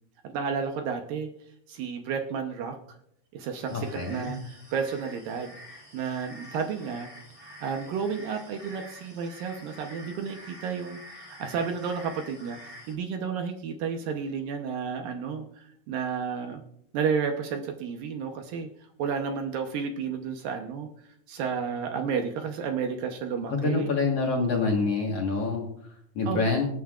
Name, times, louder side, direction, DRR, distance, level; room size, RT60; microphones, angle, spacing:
voice 1, 0.2-1.3 1.7-2.8 3.3-5.5 5.9-7.1 7.6-16.6 16.9-18.7 19.0-20.9 21.3-23.9 26.3-26.4, right 6 dB, 70° right, 4 dB, 2.3 m, -32 dB
sound 1, 3.6-12.9, equal, 5° right, 2.4 m, -47 dB
voice 2, 3.7-4.4 23.5-26.7, left 3 dB, 55° left, -1 dB, 1.9 m, -27 dB
25.5 x 9.4 x 2.4 m, 0.70 s
omnidirectional pair, 4.6 m